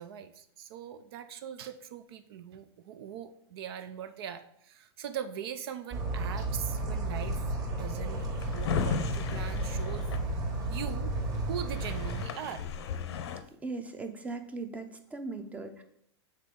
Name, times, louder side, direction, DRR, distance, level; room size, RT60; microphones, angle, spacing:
voice 1, 0.0-8.2 8.5-10.1 10.7-11.1 11.4-12.7, right 9 dB, 65° right, 10 dB, 0.5 m, -41 dB
sound 1, 5.9-12.2, right 2 dB, 25° right, 1.5 m, -33 dB
Drawer open or close, 8.2-10.9 11.4-11.5 11.7-13.4, left 7 dB, 75° left, 0.7 m, -35 dB
voice 2, 13.6-15.8, right 3 dB, 10° right, 7 dB, 0.6 m, -38 dB
6.5 x 4.2 x 3.7 m, 0.70 s
hypercardioid pair, 135°, 14 cm